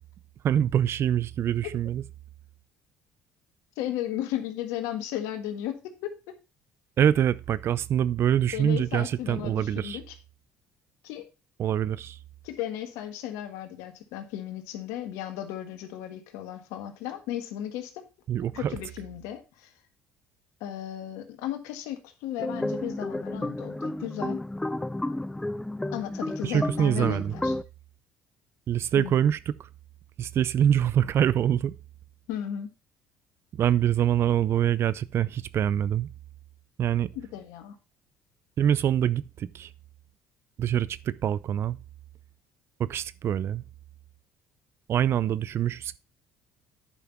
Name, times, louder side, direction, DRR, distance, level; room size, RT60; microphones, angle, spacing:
voice 1, 0.4-2.0 7.0-10.0 11.6-12.2 18.3-18.8 26.4-27.3 28.7-29.7 30.2-31.7 33.6-36.1 36.8-37.1 38.6-39.7 40.6-41.8 42.8-43.6 44.9-46.0, right 10 dB, 50° right, 0.5 m, -25 dB
voice 2, 3.8-6.1 8.5-10.1 11.0-11.2 12.4-18.1 18.5-19.7 20.6-24.4 25.9-27.5 29.0-29.2 32.3-32.7 37.1-37.7, left 11 dB, 80° left, 1.5 m, -35 dB
sound 1, 22.4-27.6, left 1 dB, 10° left, 0.6 m, -32 dB
9.9 x 5.7 x 4.4 m
supercardioid pair, 75°, 5 cm